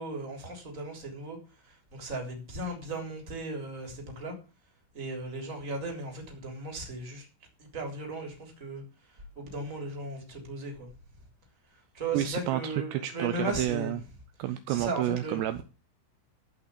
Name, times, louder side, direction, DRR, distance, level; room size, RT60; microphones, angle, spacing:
voice 1, 0.0-1.4 1.6-4.3 4.9-7.3 7.6-10.9 11.7-14.0 14.7-15.4, right 2 dB, 20° right, 3.1 m, -37 dB
voice 2, 12.1-14.0 14.4-15.6, right 13 dB, 85° right, 2.4 m, -30 dB
14.5 x 5.6 x 8.3 m
omnidirectional pair, 5.7 m